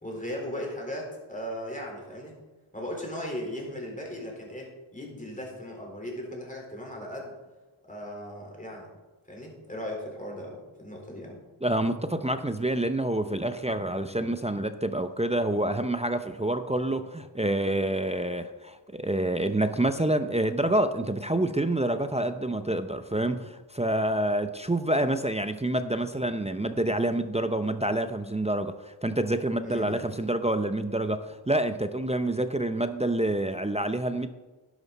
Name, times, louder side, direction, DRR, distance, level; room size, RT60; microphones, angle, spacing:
voice 1, 0.0-2.3 2.7-7.3 7.8-8.9 9.3-11.4 29.6-30.0, equal, 15° left, -1 dB, 4.2 m, -37 dB
voice 2, 11.6-34.3, right 1 dB, 15° right, 9 dB, 0.6 m, -27 dB
11.5 x 11.0 x 4.1 m, 1.2 s
wide cardioid pair, 65°, 48 cm